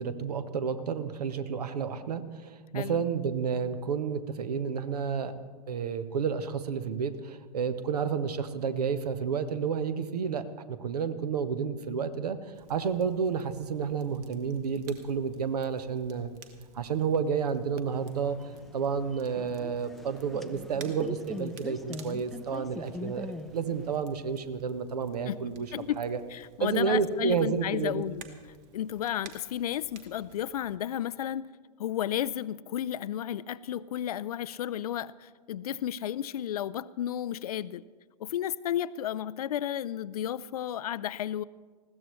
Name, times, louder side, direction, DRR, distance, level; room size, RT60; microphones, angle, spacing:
voice 1, 0.0-5.3 5.7-12.4 12.7-16.3 16.7-18.4 18.7-25.7 26.0-26.2 26.6-28.1, right 6 dB, 65° right, 11 dB, 1.1 m, -30 dB
Crackle, 12.5-30.8, right 6 dB, 40° right, 1.3 m, -55 dB
sound 1, 17.9-24.0, left 1 dB, ahead, 0.6 m, -42 dB
voice 2, 25.7-26.0 26.3-28.2 28.7-31.5 31.8-37.8 38.2-41.4, left 11 dB, 60° left, 18 dB, 0.4 m, -33 dB
20.0 x 15.5 x 3.2 m, 1.5 s
figure-of-eight pair, 105°, 21 cm